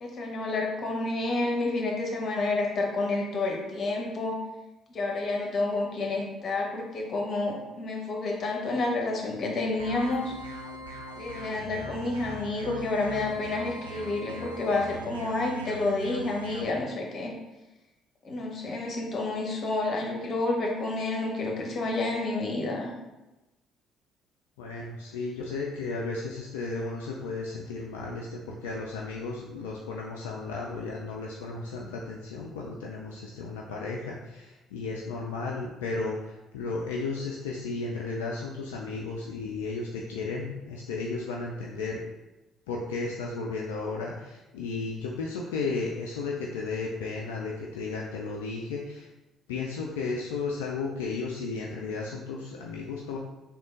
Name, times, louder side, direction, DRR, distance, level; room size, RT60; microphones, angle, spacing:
voice 1, 0.0-4.4 4.9-10.3 11.2-17.3 18.2-22.9, left 2 dB, 45° left, 0 dB, 0.9 m, -29 dB
sound 1, 9.8-16.6, right 1 dB, 85° right, 0.5 m, -41 dB
voice 2, 24.6-42.0 42.7-49.1 49.5-53.2, left 3 dB, 75° left, -2 dB, 0.3 m, -34 dB
3.6 x 2.9 x 3.7 m, 1.0 s
figure-of-eight pair, 50°, 0 cm